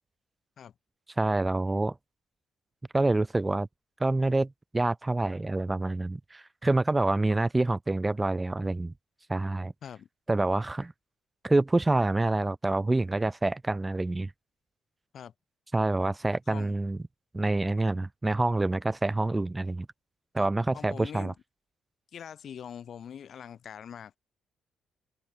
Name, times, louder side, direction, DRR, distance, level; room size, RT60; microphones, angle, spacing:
voice 1, 1.2-1.9 2.9-3.7 4.0-8.9 9.3-9.7 10.3-10.9 11.4-14.3 15.7-17.0 17.3-19.9 20.3-21.3, right 2 dB, 15° right, 1.0 m, -27 dB
voice 2, 20.7-21.3 22.1-24.2, left 8 dB, 60° left, 3.2 m, -43 dB
cardioid pair, 90°, 0 cm